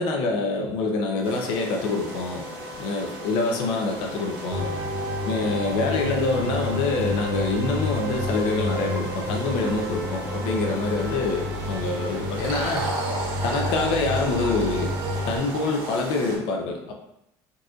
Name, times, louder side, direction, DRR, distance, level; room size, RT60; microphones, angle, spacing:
voice 1, 0.0-2.4 2.8-4.7 5.3-12.9 13.4-14.9 15.2-16.9, left 3 dB, 70° left, 1 dB, 0.6 m, -26 dB
Wind instrument woodwind instrument, 1.0-11.4, left 3 dB, 45° left, 1.3 m, -43 dB
sound 1, 1.2-16.4, right 2 dB, 75° right, 1.1 m, -36 dB
sound 2, 4.5-15.4, left 1 dB, 35° right, 1.0 m, -30 dB
4.0 x 2.6 x 2.4 m, 0.80 s
supercardioid pair, 105°, 9 cm